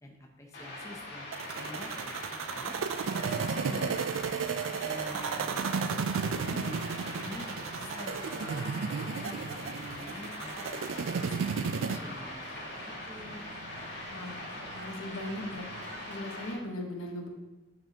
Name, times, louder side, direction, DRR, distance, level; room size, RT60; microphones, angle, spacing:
voice 1, 0.0-2.8 3.2-3.9 4.5-6.8 7.2-13.5, left 1 dB, 15° left, 1 dB, 0.6 m, -47 dB
sound 1, 0.5-16.5, left 1 dB, 55° left, 1.9 m, -42 dB
sound 2, 1.3-12.0, right 6 dB, 85° right, 0.4 m, -33 dB
sound 3, 2.5-16.2, right 3 dB, 55° right, 0.7 m, -48 dB
voice 2, 3.2-3.8 14.1-14.4 14.7-15.7 16.1-17.3, left 1 dB, 85° left, 1 dB, 1.2 m, -39 dB
8.8 x 5.4 x 2.9 m, 1.1 s
head